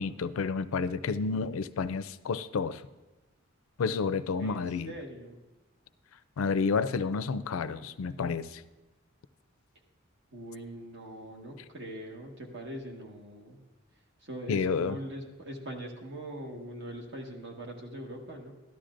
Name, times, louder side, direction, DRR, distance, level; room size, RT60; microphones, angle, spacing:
voice 1, 0.0-2.8 3.8-4.9 6.4-8.6 14.5-15.0, left 5 dB, 75° left, 14 dB, 0.4 m, -30 dB
voice 2, 4.4-5.4 10.3-13.6 14.2-18.5, right 1 dB, 60° right, 0 dB, 1.5 m, -42 dB
13.5 x 11.5 x 2.5 m, 1.1 s
head